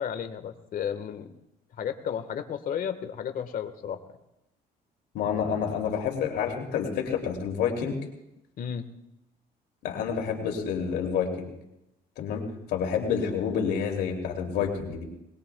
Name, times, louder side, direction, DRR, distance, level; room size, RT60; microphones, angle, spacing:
voice 1, 0.0-1.3 1.7-4.0 8.6-8.9, left 8 dB, 55° left, 7 dB, 1.5 m, -33 dB
voice 2, 5.1-8.0 9.8-11.5 12.2-15.0, left 7 dB, 80° left, 2 dB, 2.8 m, -28 dB
22.5 x 20.5 x 2.3 m, 0.87 s
cardioid pair, 110°, 17 cm